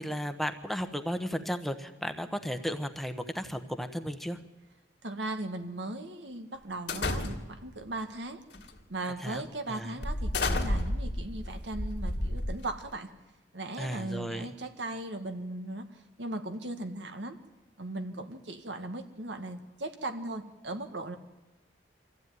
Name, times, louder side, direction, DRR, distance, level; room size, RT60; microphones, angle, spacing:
voice 1, 0.0-4.4 9.2-10.0 13.8-14.5, equal, ahead, 8 dB, 1.1 m, -34 dB
voice 2, 5.0-8.4 8.9-13.1 13.5-15.9 16.2-17.4 17.8-21.2, right 2 dB, 85° right, 7 dB, 1.8 m, -38 dB
sound 1, 6.9-7.7 8.5-8.8 9.2-9.4 10.0-12.9, left 1 dB, 70° left, 2.5 m, -31 dB
24.5 x 15.0 x 9.4 m, 1.1 s
head